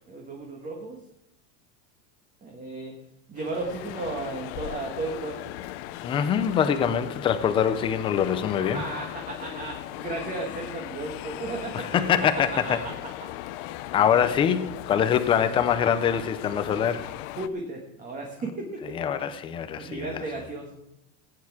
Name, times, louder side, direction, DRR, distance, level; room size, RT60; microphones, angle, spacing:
voice 1, 0.1-1.0 2.4-2.9 3.3-5.4 8.7-11.8 12.6-12.7 17.4-19.0 19.8-20.8, right 2 dB, 20° right, 0 dB, 1.6 m, -34 dB
sound 1, 3.4-17.5, left 14 dB, 50° left, 0.7 m, -38 dB
voice 2, 6.0-8.8 11.7-12.8 13.9-17.1 18.8-20.2, left 8 dB, 15° left, 10 dB, 0.3 m, -24 dB
16.0 x 9.5 x 4.8 m, 0.86 s
supercardioid pair, 170°, 41 cm